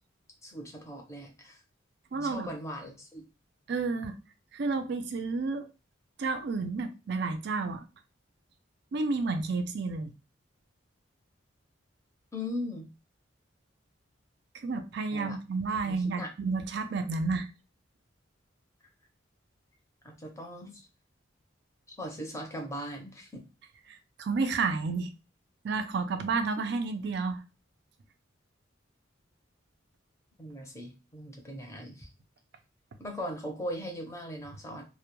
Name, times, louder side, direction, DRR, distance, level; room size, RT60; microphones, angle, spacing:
voice 1, 0.4-1.6 2.2-3.2 12.3-12.9 15.1-15.3 15.8-16.3 20.0-20.8 22.0-23.4 30.4-32.1 33.0-34.8, equal, 15° left, 0.6 m, -39 dB
voice 2, 2.1-2.5 3.7-4.2 4.5-5.7 6.2-7.8 8.9-10.1 14.6-17.5 23.9-25.1 25.6-27.4, right 4 dB, 55° right, 0.4 m, -31 dB
2.1 x 2.1 x 2.9 m
head